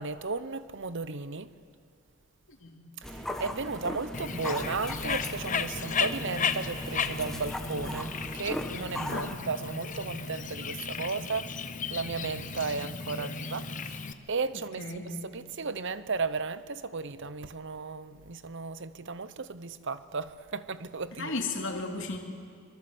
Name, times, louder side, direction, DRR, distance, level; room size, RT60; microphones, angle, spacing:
voice 1, 0.0-1.5 3.0-11.5 11.9-14.8 15.2-21.4, right 4 dB, 55° right, 0.9 m, -35 dB
sound 1, 3.0-9.3, left 1 dB, ahead, 1.5 m, -38 dB
Bird, 4.1-14.1, left 5 dB, 35° left, 1.0 m, -35 dB
voice 2, 14.5-15.1 21.2-22.2, left 3 dB, 60° left, 2.9 m, -34 dB
25.0 x 23.0 x 7.9 m
head